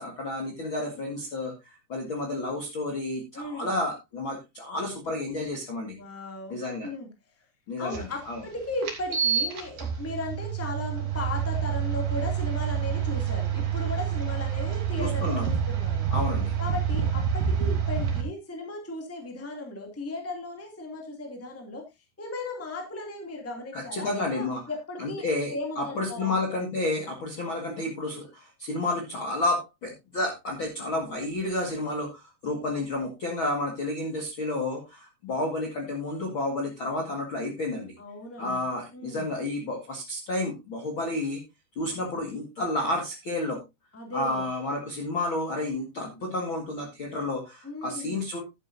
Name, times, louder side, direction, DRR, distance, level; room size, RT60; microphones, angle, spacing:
voice 1, 0.0-5.9 6.5-6.9 7.7-8.4 15.0-15.5 16.1-16.5 23.7-24.6 25.0-37.9 38.4-41.4 41.8-43.6 44.1-48.4, left 2 dB, 45° left, 0 dB, 1.8 m, -31 dB
voice 2, 3.3-3.7 6.0-7.1 7.8-16.1 16.6-21.8 22.2-26.4 38.0-38.6 38.9-39.3 43.9-44.4 47.6-48.2, left 2 dB, 5° left, 3 dB, 1.6 m, -36 dB
sound 1, 7.9-8.0 8.8-18.2, right 8 dB, 55° right, 3.8 m, -27 dB
11.5 x 10.5 x 2.7 m, 0.22 s
omnidirectional pair, 4.8 m